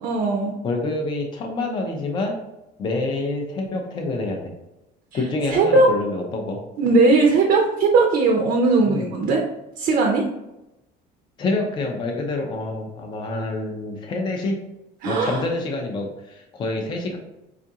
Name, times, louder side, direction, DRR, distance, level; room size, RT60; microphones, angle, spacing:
voice 1, 0.0-0.5 5.5-5.9 6.8-9.4 9.8-10.3 15.0-15.4, right 3 dB, 45° right, 1 dB, 0.5 m, -18 dB
voice 2, 0.6-2.4 2.8-4.5 5.1-6.6 8.9-9.0 11.4-14.6 15.0-17.2, left 2 dB, 25° left, 2 dB, 0.4 m, -27 dB
4.5 x 2.4 x 2.7 m, 0.91 s
cardioid pair, 175°, 19 cm